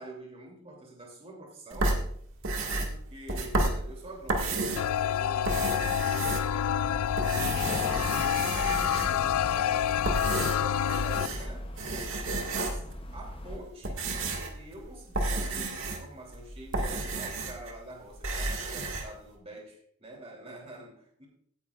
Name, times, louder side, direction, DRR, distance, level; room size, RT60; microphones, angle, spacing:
voice 1, 0.0-2.0 2.7-8.0 8.5-10.1 10.4-11.7 12.4-12.9 13.1-21.3, right 1 dB, 30° right, -1 dB, 2.9 m, -46 dB
sound 1, 1.7-5.0 5.3-6.8 7.1-9.3 9.9-11.5 11.8-13.0 13.5-17.7 18.0-19.1, right 2 dB, 60° right, 1.8 m, -32 dB
sound 2, 4.8-11.3, left 10 dB, 80° left, 0.3 m, -28 dB
sound 3, 5.5-13.6, left 1 dB, 25° left, 0.7 m, -41 dB
16.5 x 9.9 x 2.4 m, 0.64 s
head